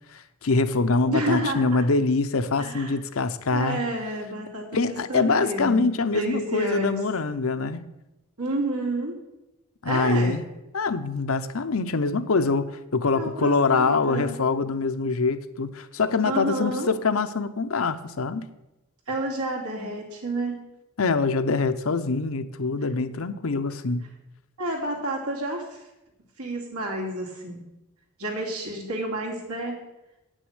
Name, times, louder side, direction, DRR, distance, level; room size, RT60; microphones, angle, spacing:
voice 1, 0.1-3.8 4.7-7.9 9.8-10.4 10.7-18.5 21.0-24.0, left 3 dB, 75° left, 10 dB, 0.7 m, -24 dB
voice 2, 1.1-1.8 2.6-2.9 3.5-7.0 8.4-9.2 9.8-10.4 13.1-14.4 16.2-16.9 19.1-20.6 24.6-25.8 26.4-27.6 28.2-29.8, right 1 dB, 90° right, -1 dB, 2.7 m, -30 dB
9.2 x 6.4 x 8.0 m, 0.96 s
head